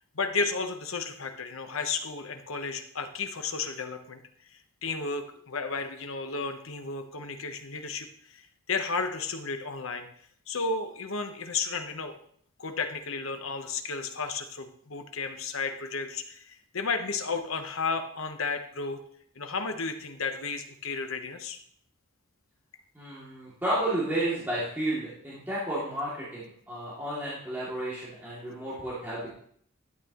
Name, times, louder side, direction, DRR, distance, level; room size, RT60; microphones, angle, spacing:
voice 1, 0.1-4.2 4.8-8.4 8.7-10.1 10.5-12.1 12.6-19.0 19.4-21.6, left 4 dB, 70° left, 7 dB, 1.1 m, -33 dB
voice 2, 22.9-29.3, right 1 dB, 10° right, -9 dB, 2.6 m, -32 dB
12.0 x 8.7 x 3.1 m, 0.62 s
head